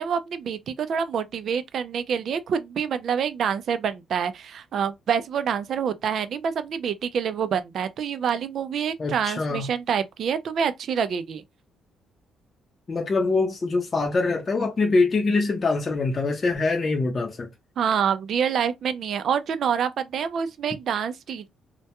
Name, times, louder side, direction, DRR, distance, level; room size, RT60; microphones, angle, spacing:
voice 1, 0.0-11.4 17.8-21.5, right 7 dB, 60° right, 0.4 m, -27 dB
voice 2, 9.0-9.7 12.9-17.5, left 3 dB, 35° left, 0.6 m, -24 dB
2.2 x 2.1 x 2.8 m
cardioid pair, 110°, 0 cm